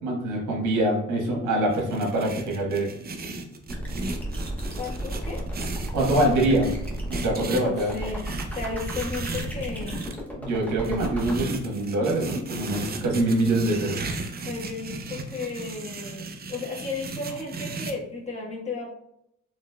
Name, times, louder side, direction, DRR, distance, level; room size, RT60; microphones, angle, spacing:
voice 1, 0.0-2.9 5.9-6.7 7.1-7.9 10.4-14.0, right 1 dB, 80° right, -1 dB, 1.4 m, -24 dB
sound 1, 1.7-10.1 10.8-17.9, right 3 dB, 30° right, 0.5 m, -36 dB
sound 2, 3.7-11.4, right 1 dB, 5° left, 1.0 m, -33 dB
voice 2, 4.8-5.4 6.0-6.4 7.3-10.0 14.4-18.9, left 3 dB, 20° left, -3 dB, 1.2 m, -34 dB
4.1 x 3.1 x 2.2 m, 0.77 s
cardioid pair, 90°, 30 cm